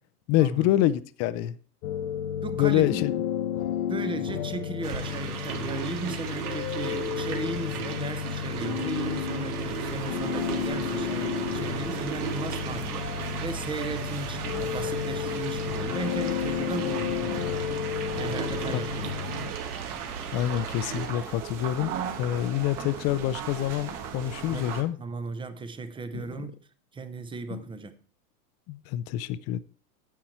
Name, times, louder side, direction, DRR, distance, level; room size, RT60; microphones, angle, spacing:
voice 1, 0.3-1.5 2.5-3.1 18.7-18.8 20.3-21.9 22.2-25.0 26.1-26.2 27.5-27.6 28.7-29.6, left 13 dB, 35° left, 0.6 m, -26 dB
sound 1, 1.8-19.5, left 9 dB, 70° left, 1.0 m, -32 dB
voice 2, 2.4-3.0 3.9-19.6 24.4-24.7 25.0-26.6 26.9-28.0, right 4 dB, 10° right, 0.7 m, -37 dB
sound 2, 4.8-21.1, right 7 dB, 75° right, 1.9 m, -36 dB
sound 3, 9.7-24.8, right 8 dB, 45° right, 1.8 m, -39 dB
9.4 x 7.2 x 4.4 m
hypercardioid pair, 120°, 45 cm